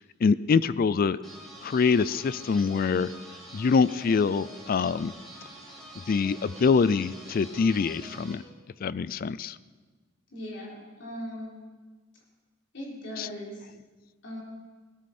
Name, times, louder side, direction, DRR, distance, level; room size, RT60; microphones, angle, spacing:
voice 1, 0.2-1.2 1.6-3.1 3.5-5.1 6.1-8.4 8.8-9.6 13.2-13.3, left 5 dB, 45° left, 18 dB, 0.3 m, -24 dB
sound 1, 1.2-8.3, right 1 dB, ahead, 3.4 m, -46 dB
voice 2, 10.3-11.6 12.7-13.6 14.2-14.4, equal, 65° left, -4 dB, 3.6 m, -39 dB
17.0 x 12.5 x 4.3 m, 1.3 s
head